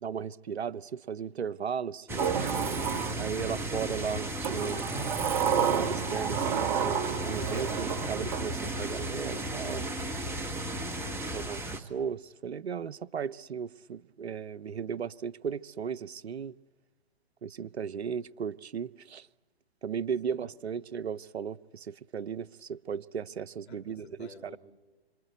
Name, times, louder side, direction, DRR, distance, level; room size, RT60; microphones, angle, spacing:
voice 1, 0.0-2.4 3.2-4.9 5.7-9.9 11.3-16.6 17.4-19.3 19.8-24.5, right 7 dB, 80° right, 0.8 m, -36 dB
sound 1, 2.1-11.8, right 1 dB, 5° right, 1.6 m, -35 dB
Sliding door, 2.2-3.7 4.4-9.1, right 8 dB, 40° right, 1.4 m, -31 dB
voice 2, 23.7-24.6, left 5 dB, 75° left, 3.7 m, -52 dB
27.0 x 26.0 x 8.1 m
hypercardioid pair, 130°, 32 cm